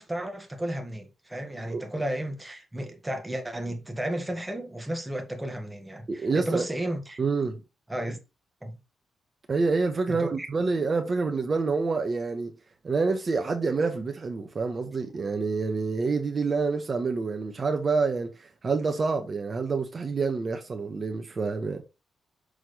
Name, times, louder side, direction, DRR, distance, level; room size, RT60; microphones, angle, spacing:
voice 1, 0.0-7.2 7.9-8.2 8.6-8.8 10.1-10.5, right 1 dB, 10° right, 1.6 m, -33 dB
voice 2, 6.1-6.7 7.2-7.6 9.5-12.5 12.8-21.8, right 4 dB, 40° right, 1.3 m, -27 dB
6.5 x 3.7 x 4.9 m
cardioid pair, 80°, 0 cm